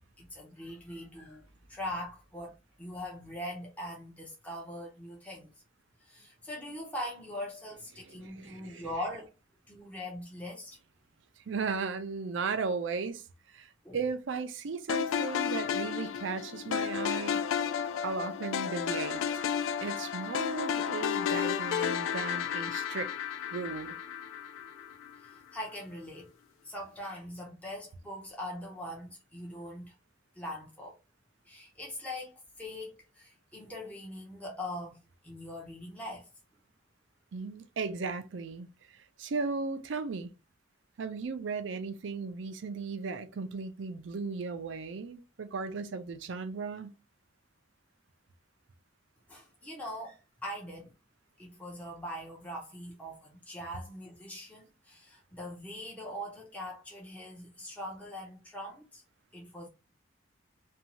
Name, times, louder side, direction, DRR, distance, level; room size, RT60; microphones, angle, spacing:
voice 1, 0.2-1.4 1.7-5.5 6.0-9.3 9.7-10.8 13.8-14.0 25.2-26.3 26.6-29.9 30.3-31.0 31.4-36.3 49.3-50.9 51.4-59.0 59.3-59.7, left 1 dB, 5° left, 0.6 m, -42 dB
voice 2, 8.0-8.9 11.4-17.4 18.0-19.5 19.8-23.1 23.5-24.0 37.3-40.3 41.0-47.0, right 4 dB, 70° right, 0.4 m, -36 dB
sound 1, 14.9-25.2, left 8 dB, 85° left, 0.3 m, -32 dB
2.7 x 2.3 x 2.9 m
head